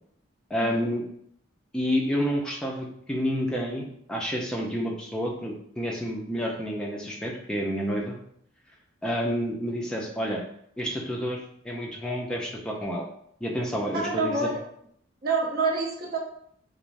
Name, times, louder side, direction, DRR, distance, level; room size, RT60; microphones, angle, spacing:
voice 1, 0.5-1.0 1.7-8.2 9.0-10.4 10.8-13.0 13.4-14.5, equal, 5° left, -2 dB, 0.4 m, -29 dB
voice 2, 13.9-14.6 15.2-16.2, right 3 dB, 50° right, -1 dB, 0.6 m, -27 dB
2.5 x 2.0 x 3.1 m, 0.68 s
head